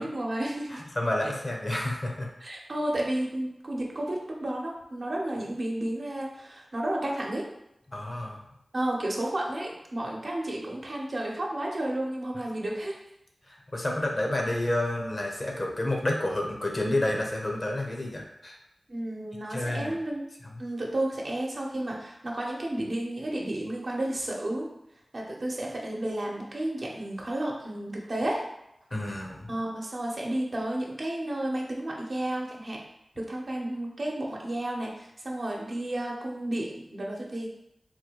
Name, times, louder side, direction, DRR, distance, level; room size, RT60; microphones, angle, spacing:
voice 1, 0.0-0.8 2.4-7.4 8.7-12.9 18.9-20.2 20.6-24.7 25.1-28.4 29.5-32.8 33.2-37.5, right 1 dB, 60° right, -2 dB, 0.9 m, -32 dB
voice 2, 0.9-2.3 7.9-8.4 13.5-18.6 19.5-20.0 20.4-20.5 28.9-29.5, left 1 dB, 45° left, 0 dB, 0.9 m, -30 dB
3.9 x 2.2 x 4.6 m, 0.83 s
cardioid pair, 45°, 0 cm